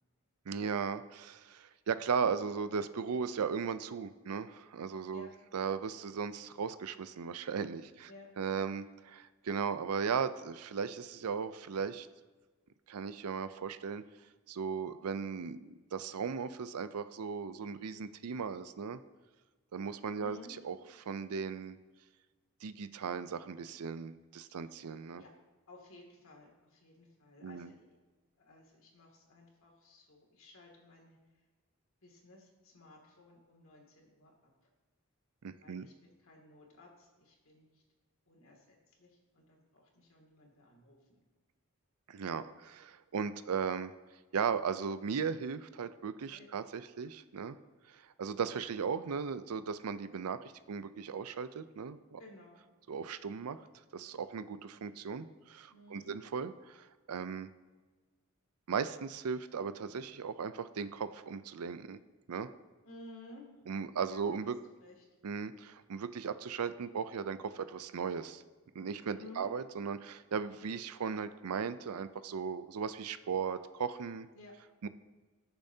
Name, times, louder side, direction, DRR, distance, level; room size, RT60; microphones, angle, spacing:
voice 1, 0.5-8.1 8.4-12.1 12.9-14.0 14.5-19.0 19.7-20.8 21.1-21.8 22.6-25.2 27.4-27.7 35.4-35.9 42.1-43.9 44.3-47.6 47.9-50.4 50.7-52.2 52.9-53.6 53.9-57.5 58.7-62.0 62.3-62.5 63.7-64.6 65.2-68.4 68.7-74.3 74.8-74.9, right 6 dB, 85° right, 13 dB, 0.5 m, -37 dB
voice 2, 20.2-20.5 25.2-25.3 25.7-28.0 28.4-31.2 32.0-34.3 35.6-35.9 36.2-37.8 38.3-41.2 46.3-46.5 52.2-52.6 55.7-56.2 62.9-63.4 64.1-64.5 64.8-65.1 69.1-69.5 74.3-74.5, left 2 dB, 65° left, -1 dB, 2.4 m, -55 dB
19.5 x 7.0 x 2.8 m, 1.3 s
head